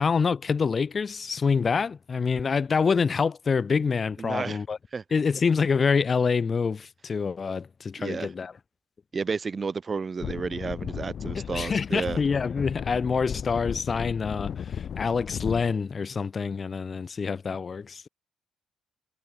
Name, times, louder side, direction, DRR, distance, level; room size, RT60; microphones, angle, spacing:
voice 1, 0.0-4.8 5.1-8.5 11.3-18.1, left 5 dB, 40° left, 0.4 m, -26 dB
voice 2, 4.2-4.6 4.9-5.0 8.0-8.3 9.1-12.2, right 5 dB, 35° right, 1.2 m, -31 dB
sound 1, 10.2-15.7, left 8 dB, 55° left, 0.9 m, -35 dB
cardioid pair, 90°, 0 cm